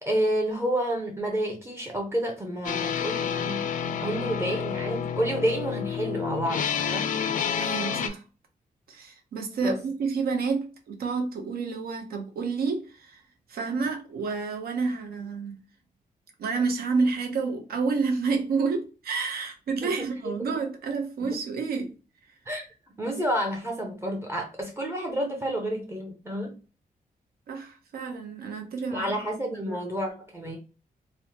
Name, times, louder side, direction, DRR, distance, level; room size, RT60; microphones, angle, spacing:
voice 1, 0.0-7.1 9.6-9.8 19.8-20.1 20.4-20.5 21.2-21.4 22.5-22.6 23.0-26.6 28.9-30.6, right 1 dB, 15° right, 0.5 m, -30 dB
sound 1, 2.6-8.1, left 7 dB, 60° left, 0.4 m, -29 dB
voice 2, 7.6-8.2 8.9-13.2 13.5-15.6 16.4-21.9 22.2-22.3 27.5-29.1 29.5-29.8, right 4 dB, 85° right, 0.7 m, -29 dB
3.1 x 2.0 x 2.9 m
wide cardioid pair, 155°, 15 cm